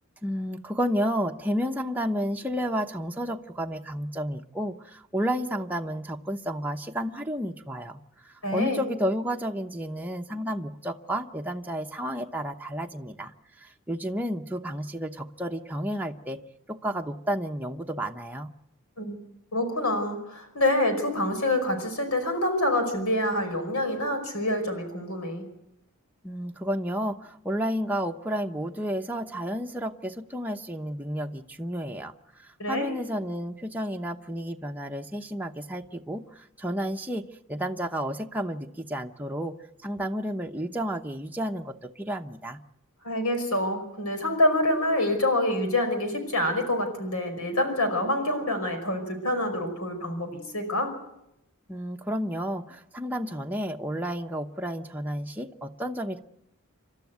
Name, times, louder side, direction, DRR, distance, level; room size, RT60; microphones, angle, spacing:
voice 1, 0.2-8.0 8.5-16.4 16.7-18.5 26.2-32.1 32.4-37.2 37.5-39.6 39.8-42.6 51.7-56.2, equal, 10° right, 2 dB, 0.9 m, -31 dB
voice 2, 8.4-8.8 19.0-19.2 19.5-25.4 32.6-32.9 43.0-50.9, left 1 dB, 80° left, 7 dB, 5.3 m, -26 dB
28.5 x 13.0 x 9.4 m, 0.85 s
head